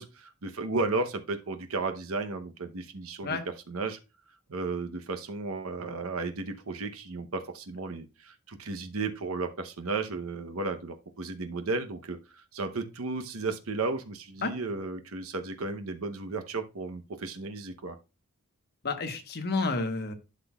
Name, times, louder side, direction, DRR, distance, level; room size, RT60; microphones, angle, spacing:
voice 1, 0.0-3.4 3.7-4.0 4.5-18.0, right 3 dB, 70° right, 0.8 m, -34 dB
voice 2, 18.8-20.1, left 3 dB, 45° left, 1.1 m, -30 dB
11.5 x 5.9 x 2.3 m
head